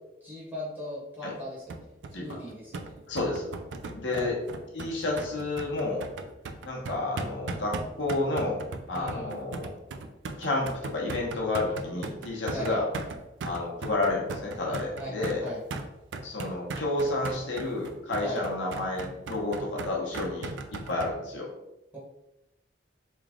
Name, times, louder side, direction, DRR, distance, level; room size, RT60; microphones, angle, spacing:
voice 1, 0.2-3.0 4.1-4.3 8.9-9.3 12.5-12.8 15.0-15.6 18.2-18.4 21.9-22.0, equal, 10° right, -7 dB, 1.1 m, -38 dB
sound 1, 1.7-21.1, right 3 dB, 80° right, 0.4 m, -38 dB
voice 2, 3.1-3.5 3.9-4.4 4.7-6.1 6.6-9.7 10.4-12.9 13.4-15.5 16.2-21.5, left 2 dB, 90° left, -3 dB, 1.0 m, -30 dB
3.2 x 2.4 x 3.5 m, 0.94 s
head